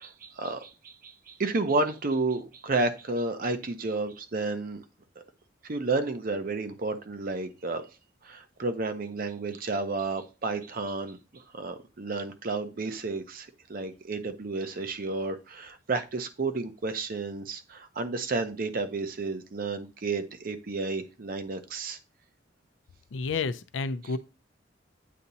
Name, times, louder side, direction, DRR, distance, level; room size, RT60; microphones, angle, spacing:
voice 1, 0.0-4.8 5.6-7.8 8.2-22.0, right 3 dB, 50° right, 0.6 m, -31 dB
voice 2, 23.1-24.2, left 4 dB, 85° left, 0.5 m, -30 dB
8.4 x 2.8 x 3.9 m
head